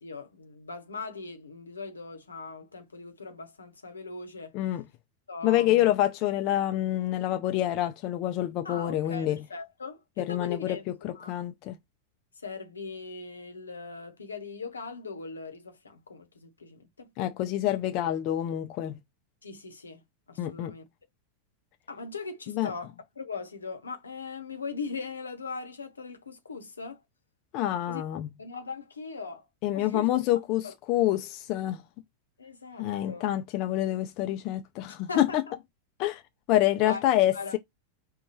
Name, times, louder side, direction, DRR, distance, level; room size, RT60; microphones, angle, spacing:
voice 1, 0.0-4.5 5.3-5.9 8.6-11.3 12.4-17.1 19.4-20.0 20.3-20.8 21.9-27.0 27.9-28.0 28.4-29.5 29.7-30.1 30.6-30.7 32.4-33.3 35.1-35.4 36.8-37.0 37.3-37.5, left 4 dB, 75° left, 0.8 m, -40 dB
voice 2, 5.4-9.4 10.2-11.7 17.2-19.0 20.4-20.7 22.5-22.7 27.5-28.3 29.6-31.8 32.8-35.4 36.0-36.2 36.5-37.6, left 13 dB, 40° left, 0.4 m, -27 dB
5.1 x 2.2 x 3.0 m
figure-of-eight pair, 90°, 0 cm